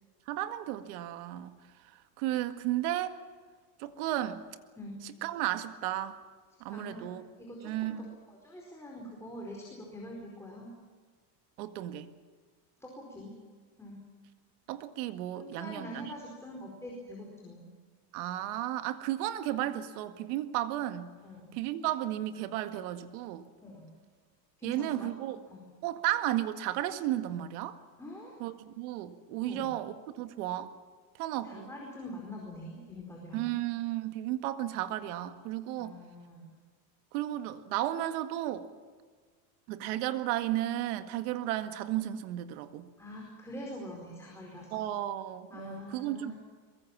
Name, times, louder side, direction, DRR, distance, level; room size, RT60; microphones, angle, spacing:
voice 1, 0.3-1.6 1.9-3.2 3.8-4.4 5.0-6.2 6.6-7.2 7.6-8.2 11.6-12.1 14.7-16.1 18.1-21.1 21.6-23.5 24.6-25.4 25.8-27.8 28.4-30.8 31.1-31.7 33.3-35.9 37.1-38.7 39.7-42.9 44.7-46.3, right 13 dB, 70° right, 9 dB, 2.0 m, -34 dB
voice 2, 6.7-10.7 12.8-13.3 13.8-14.0 15.3-17.7 21.2-21.6 23.6-23.9 24.6-25.1 25.5-25.6 28.0-28.4 29.4-29.7 31.4-33.5 35.8-36.5 43.0-44.9 45.5-46.4, left 1 dB, 5° left, -2 dB, 4.6 m, -44 dB
23.5 x 22.5 x 7.4 m, 1.5 s
cardioid pair, 155°, 46 cm